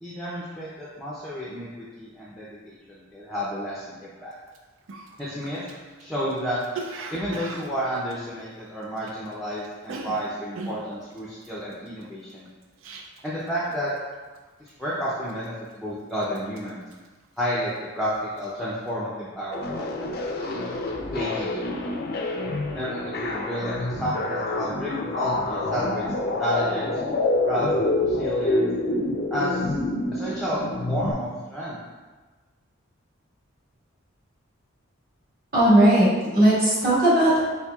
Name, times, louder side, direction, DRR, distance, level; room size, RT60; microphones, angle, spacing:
voice 1, 0.0-4.3 5.2-5.6 6.0-6.6 7.1-12.5 13.2-13.9 14.6-16.8 17.4-19.9 21.1-21.7 22.7-24.9 25.2-26.9 27.4-27.7 28.1-28.7 29.3-29.7 30.1-31.8, equal, ahead, -8 dB, 0.5 m, -31 dB
Cough, 4.5-4.6 4.9-9.3 9.6-13.4 13.7-14.1 14.3-14.8 15.3-15.9 16.2-17.9 18.2-18.5, right 3 dB, 70° right, 0.4 m, -39 dB
sound 1, 19.5-31.1, left 2 dB, 50° left, 0.5 m, -27 dB
voice 2, 35.5-37.4, right 1 dB, 45° right, -9 dB, 1.5 m, -18 dB
4.4 x 4.3 x 2.3 m, 1.3 s
head